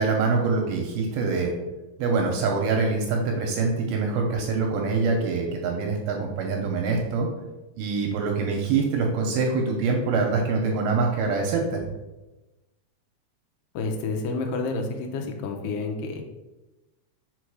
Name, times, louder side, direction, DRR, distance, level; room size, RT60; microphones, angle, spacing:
voice 1, 0.0-1.5 2.0-7.3 7.8-11.8, right 4 dB, 80° right, 2 dB, 2.4 m, -24 dB
voice 2, 13.7-16.2, left 3 dB, 85° left, 3 dB, 1.8 m, -29 dB
4.9 x 4.7 x 4.7 m, 1.1 s
omnidirectional pair, 4.7 m